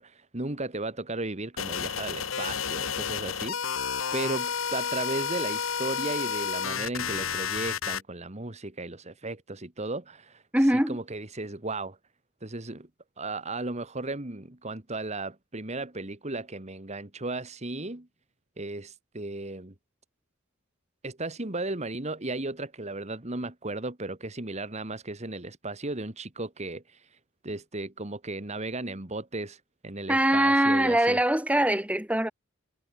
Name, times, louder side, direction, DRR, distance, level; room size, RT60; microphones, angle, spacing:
voice 1, 0.0-10.4 10.9-12.0 12.4-12.9 13.2-18.1 18.6-19.7 21.0-27.1 27.4-31.2, right 2 dB, 35° right, 1.9 m, -35 dB
sound 1, 1.6-8.0, left 7 dB, 80° left, 1.4 m, -31 dB
voice 2, 10.5-11.0 30.1-32.3, right 1 dB, 5° right, 2.7 m, -22 dB
head